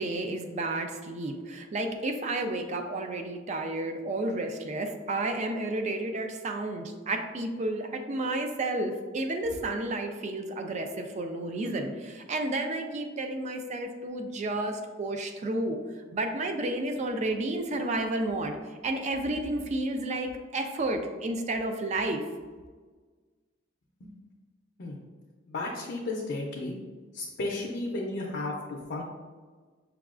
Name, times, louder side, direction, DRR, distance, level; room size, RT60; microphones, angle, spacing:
voice 1, 0.0-15.8 16.1-18.6 18.8-22.2, right 2 dB, 35° right, 5 dB, 0.3 m, -31 dB
voice 2, 25.5-26.8 27.1-29.0, left 2 dB, 60° left, -2 dB, 0.5 m, -33 dB
5.8 x 2.3 x 2.4 m, 1.4 s
head